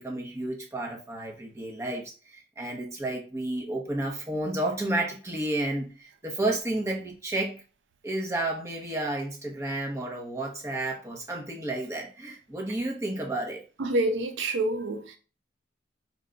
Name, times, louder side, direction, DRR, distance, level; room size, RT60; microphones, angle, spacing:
voice 1, 0.0-7.6 8.0-13.6, right 1 dB, 15° right, 0.8 m, -31 dB
voice 2, 13.8-15.2, right 2 dB, 80° right, 0.5 m, -27 dB
4.6 x 2.2 x 3.8 m
head